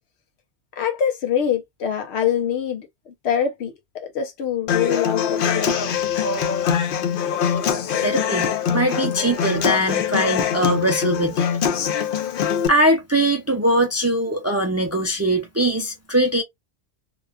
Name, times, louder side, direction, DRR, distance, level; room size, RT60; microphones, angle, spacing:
voice 1, 0.8-5.7, left 8 dB, 85° left, 1.0 m, -24 dB
Human voice / Acoustic guitar, 4.7-12.7, left 7 dB, 60° left, 0.7 m, -23 dB
voice 2, 8.0-11.5 12.7-16.4, right 1 dB, 20° right, 0.4 m, -21 dB
2.8 x 2.3 x 2.3 m
omnidirectional pair, 1.1 m